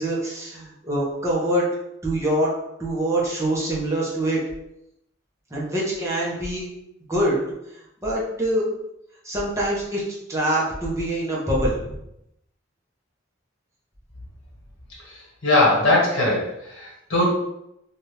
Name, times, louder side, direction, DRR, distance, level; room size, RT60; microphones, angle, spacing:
voice 1, 0.0-1.7 2.0-2.5 2.8-4.4 5.5-6.7 7.1-7.4 8.0-8.6 9.2-10.0 10.3-12.0, right 1 dB, 15° right, -5 dB, 0.9 m, -24 dB
voice 2, 15.4-17.3, left 2 dB, 65° left, -3 dB, 1.4 m, -20 dB
2.9 x 2.4 x 3.3 m, 0.81 s
head